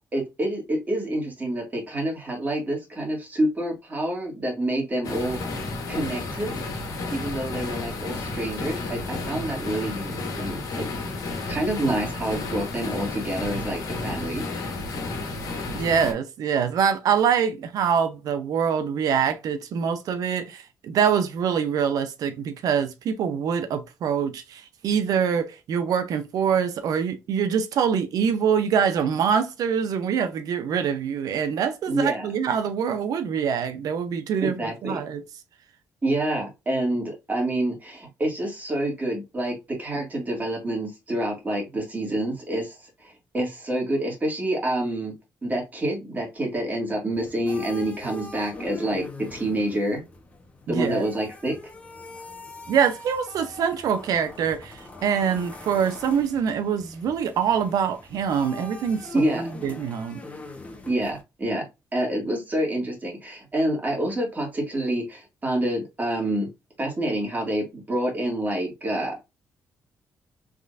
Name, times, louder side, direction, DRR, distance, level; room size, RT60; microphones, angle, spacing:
voice 1, 0.1-5.4 5.9-6.5 7.1-10.9 11.5-14.5 31.9-32.3 34.4-35.0 36.0-45.1 45.4-49.0 49.3-50.0 50.7-51.6 59.1-59.5 60.9-61.6 61.9-66.5 66.8-69.1, right 1 dB, 25° right, 2.0 m, -27 dB
sound 1, 5.0-16.1, left 3 dB, 70° left, 1.5 m, -32 dB
voice 2, 15.7-34.5 34.8-35.2 50.7-51.0 52.7-59.4 59.6-60.2, right 7 dB, 75° right, 0.6 m, -24 dB
sound 2, 47.1-61.2, left 2 dB, 20° left, 1.0 m, -42 dB
3.6 x 3.2 x 2.5 m
cardioid pair, 90°, 6 cm